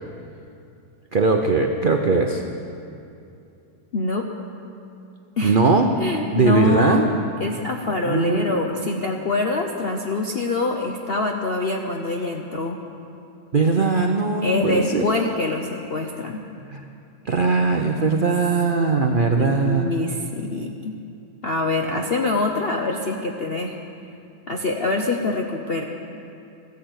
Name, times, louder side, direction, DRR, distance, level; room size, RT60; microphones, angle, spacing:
voice 1, 1.1-2.4 5.4-5.9 6.3-7.1 8.1-9.1 13.5-15.1 16.7-16.9 17.2-19.9 21.8-22.0, right 4 dB, 90° right, 3 dB, 0.4 m, -20 dB
voice 2, 3.9-4.3 5.4-5.6 6.0-7.1 7.4-12.8 14.4-16.4 19.4-21.0 21.4-23.8 24.5-25.8, left 3 dB, 65° left, 2 dB, 0.5 m, -25 dB
14.5 x 10.5 x 8.0 m, 2.6 s
omnidirectional pair, 2.1 m